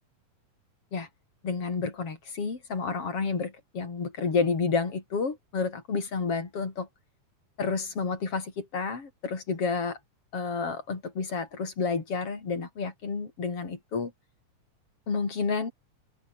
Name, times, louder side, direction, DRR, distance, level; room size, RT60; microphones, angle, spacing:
voice 1, 1.4-6.9 7.6-10.0 10.3-14.1 15.1-15.7, left 4 dB, 45° left, 4.9 m, -30 dB
omnidirectional pair, 3.8 m